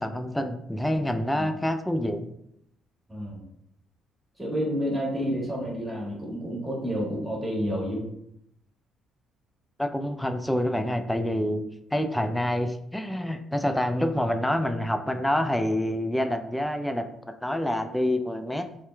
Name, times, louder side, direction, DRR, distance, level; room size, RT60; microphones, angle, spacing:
voice 1, 0.0-2.3 9.8-11.6 11.9-18.7, left 1 dB, 5° left, 7 dB, 0.3 m, -27 dB
voice 2, 1.2-1.5 3.1-3.4 4.4-8.0, equal, 10° right, -4 dB, 1.4 m, -30 dB
2.8 x 2.2 x 3.2 m, 0.76 s
hypercardioid pair, 45°, 0 cm